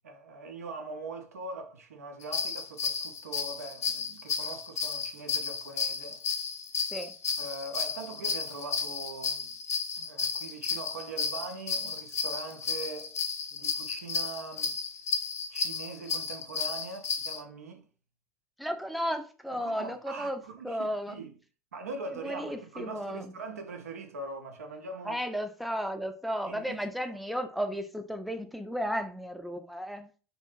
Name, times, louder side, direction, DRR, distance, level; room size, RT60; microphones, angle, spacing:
voice 1, 0.0-6.2 7.4-9.6 10.0-13.1 13.5-14.8 15.5-17.9 19.5-21.3 21.7-25.2 26.5-26.8, right 3 dB, 80° right, 0.4 m, -42 dB
sound 1, 2.2-17.4, left 6 dB, 75° left, 0.4 m, -33 dB
voice 2, 18.6-21.2 22.1-23.3 25.0-30.1, equal, ahead, 0.4 m, -34 dB
2.7 x 2.4 x 2.3 m
figure-of-eight pair, 65°, 8 cm